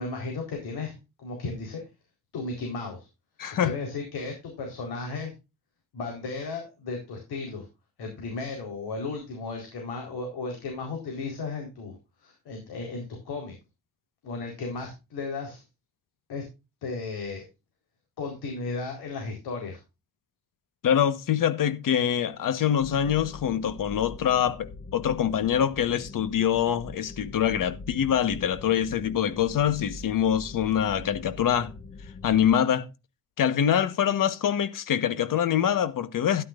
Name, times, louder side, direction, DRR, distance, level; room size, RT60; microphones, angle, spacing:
voice 1, 0.0-1.8 2.3-3.1 3.6-5.3 5.9-7.7 8.0-13.6 14.2-15.6 16.3-16.4 16.8-17.4 18.2-19.8, left 3 dB, 90° left, 4.2 m, -35 dB
voice 2, 3.4-3.8 20.8-31.7 32.2-32.9 33.4-36.4, left 9 dB, 60° left, 1.3 m, -24 dB
sound 1, 22.8-32.5, left 3 dB, 30° left, 1.1 m, -43 dB
12.5 x 11.0 x 2.5 m
cardioid pair, 150°, 37 cm